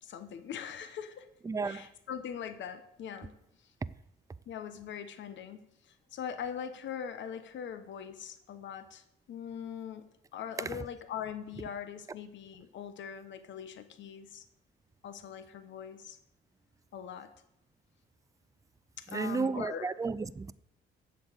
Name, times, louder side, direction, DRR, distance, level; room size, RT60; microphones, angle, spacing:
voice 1, 0.0-1.3 1.6-3.3 4.5-5.6 5.9-14.4 15.0-16.2 16.9-17.3 19.0-19.9, left 8 dB, 70° left, 1.0 m, -41 dB
voice 2, 1.4-1.9 10.6-10.8 19.1-20.5, right 4 dB, 15° right, 0.4 m, -33 dB
8.0 x 7.0 x 8.0 m
cardioid pair, 90°, 20 cm